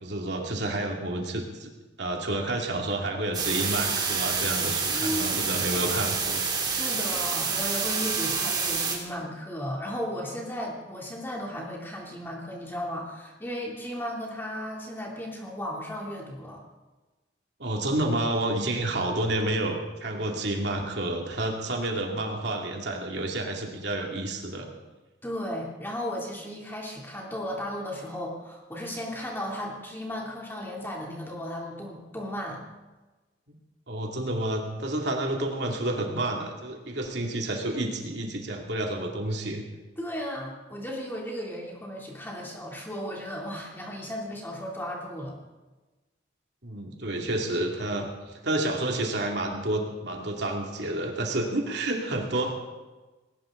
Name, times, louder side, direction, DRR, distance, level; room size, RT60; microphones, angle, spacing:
voice 1, 0.0-1.7 2.0-6.4 6.7-6.8 17.6-24.7 33.9-39.6 46.6-52.5, right 1 dB, 65° right, 1 dB, 2.5 m, -30 dB
sound 1, 3.3-9.0, right 5 dB, 20° right, 2.5 m, -28 dB
voice 2, 4.8-5.6 6.6-16.6 25.2-32.6 40.0-45.4, equal, 10° left, -2 dB, 3.0 m, -35 dB
19.5 x 18.5 x 3.9 m, 1.2 s
head